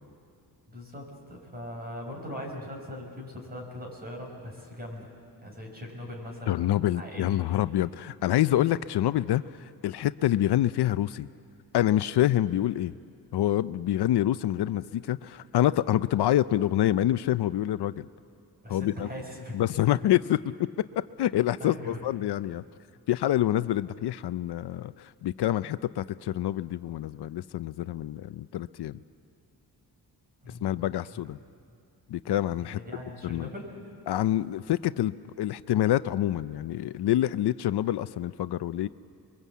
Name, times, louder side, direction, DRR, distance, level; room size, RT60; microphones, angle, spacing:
voice 1, 0.7-5.1 5.4-6.6 6.9-7.4 18.6-19.6 21.6-22.1 30.4-31.1 32.6-33.7, left 1 dB, 25° right, 1 dB, 5.2 m, -40 dB
voice 2, 6.5-11.3 11.7-12.9 13.3-18.1 18.7-19.1 19.5-22.6 23.1-29.0 30.5-31.4 32.1-32.8 33.2-33.5 34.1-38.9, left 13 dB, 75° left, 14 dB, 0.6 m, -27 dB
29.0 x 22.5 x 8.3 m, 2.4 s
wide cardioid pair, 175°, 40 cm